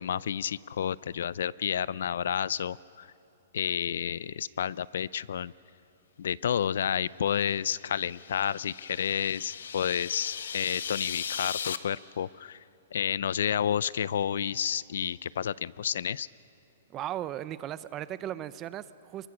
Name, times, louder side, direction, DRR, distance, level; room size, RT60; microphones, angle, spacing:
voice 1, 0.0-3.1 3.5-5.5 6.2-12.6 12.9-16.3, left 9 dB, 70° left, 21 dB, 0.5 m, -30 dB
sound 1, 7.6-11.8, left 7 dB, 85° left, 1.0 m, -38 dB
voice 2, 16.9-19.3, right 12 dB, 20° right, 16 dB, 0.5 m, -36 dB
27.5 x 22.5 x 6.2 m, 2.7 s
hypercardioid pair, 165°, 0 cm